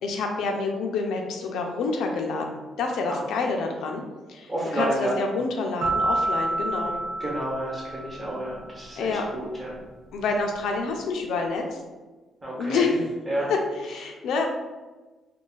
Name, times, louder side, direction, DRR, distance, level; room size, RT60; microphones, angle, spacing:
voice 1, 0.0-2.5 2.8-4.0 4.3-7.0 9.0-9.3 10.1-11.8 12.6-13.0 13.5-14.5, left 4 dB, 80° left, 2 dB, 0.4 m, -27 dB
voice 2, 4.5-5.2 7.2-9.8 12.4-13.0 13.3-13.5, right 1 dB, 20° right, -5 dB, 1.1 m, -30 dB
sound 1, 5.8-8.6, right 2 dB, 70° right, 0.5 m, -28 dB
2.4 x 2.2 x 3.9 m, 1.2 s
cardioid pair, 140°, 0 cm